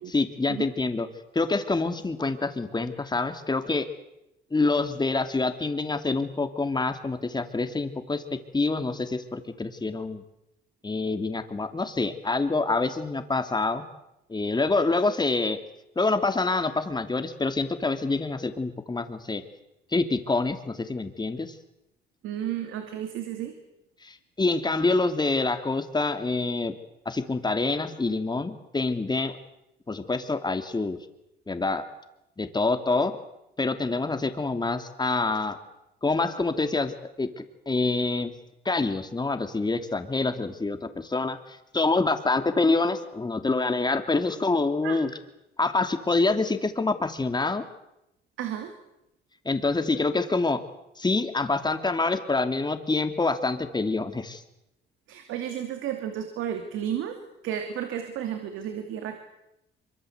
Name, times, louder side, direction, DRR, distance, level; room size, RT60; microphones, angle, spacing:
voice 1, 0.1-1.1 1.3-3.9 4.5-8.2 8.5-10.2 10.8-13.8 14.3-15.6 15.9-19.4 19.9-21.5 24.0-26.7 27.0-29.4 29.9-31.0 31.5-31.8 32.4-33.1 33.6-35.6 36.0-38.3 38.6-45.1 45.6-47.6 49.4-50.6 51.0-54.4, left 3 dB, 20° left, 8 dB, 2.9 m, -26 dB
voice 2, 22.2-23.5 44.8-45.0 48.4-48.7 55.1-57.2 57.4-59.2, right 10 dB, 90° right, 6 dB, 2.7 m, -32 dB
25.0 x 23.5 x 8.1 m, 0.86 s
cardioid pair, 90°, 20 cm